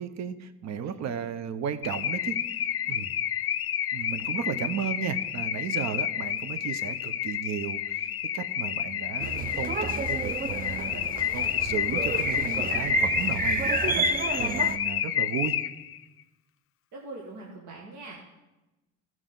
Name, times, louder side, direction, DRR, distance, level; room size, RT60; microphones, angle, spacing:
voice 1, 0.0-3.1 3.9-15.6, right 8 dB, 65° right, 11 dB, 0.8 m, -35 dB
Car / Alarm, 1.8-16.0, left 10 dB, 50° left, 0.4 m, -30 dB
sound 1, 9.2-14.8, right 5 dB, 30° right, 0.4 m, -30 dB
voice 2, 16.9-18.2, right 2 dB, 85° right, -3 dB, 1.7 m, -43 dB
15.5 x 6.1 x 3.9 m, 1.1 s
cardioid pair, 90°, 30 cm